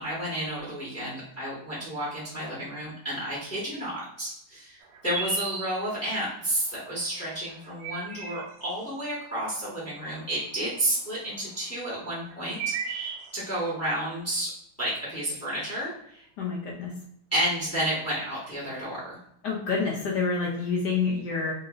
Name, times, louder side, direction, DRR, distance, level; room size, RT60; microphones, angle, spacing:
voice 1, 0.0-14.5 14.8-16.3 17.3-19.2, right 1 dB, 10° left, -6 dB, 0.8 m, -31 dB
sound 1, 4.8-6.2 7.5-8.8 10.0-10.8 11.8-13.8, right 5 dB, 85° right, 1.5 m, -35 dB
voice 2, 16.4-16.9 19.4-21.5, left 4 dB, 80° left, -2 dB, 0.9 m, -28 dB
3.1 x 2.9 x 2.4 m, 0.73 s
omnidirectional pair, 2.4 m